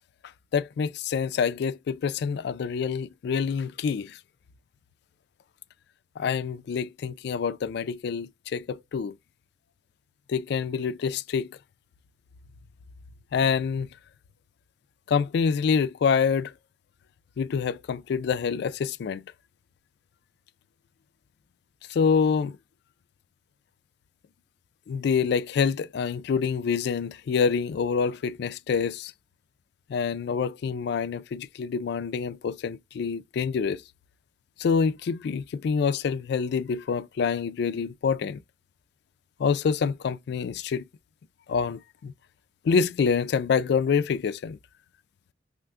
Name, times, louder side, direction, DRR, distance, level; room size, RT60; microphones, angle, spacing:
voice 1, 0.5-4.2 6.2-9.2 10.3-11.6 13.3-13.9 15.1-16.5 17.4-19.3 21.9-22.6 24.9-29.1 29.9-33.8 34.6-38.4 39.4-40.8 41.5-42.1 42.6-44.6, left 6 dB, 60° left, 0.3 m, -26 dB
3.2 x 2.2 x 3.5 m
head